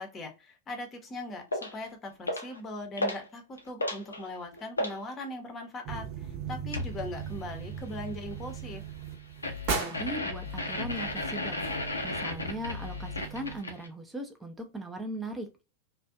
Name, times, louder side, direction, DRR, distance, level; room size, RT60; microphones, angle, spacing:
voice 1, 0.0-8.8, left 1 dB, 25° left, 4 dB, 0.7 m, -40 dB
sound 1, 1.5-1.8 2.3-2.6 3.0-3.3 3.6-5.0 6.7-7.0 9.4-13.9, left 2 dB, 75° left, 0.5 m, -34 dB
sound 2, 5.8-13.6, right 6 dB, 45° right, 0.8 m, -39 dB
voice 2, 9.7-11.7 12.0-15.5, right 1 dB, 10° right, 5 dB, 0.5 m, -38 dB
2.4 x 2.2 x 2.4 m, 0.28 s
figure-of-eight pair, 90°, 0 cm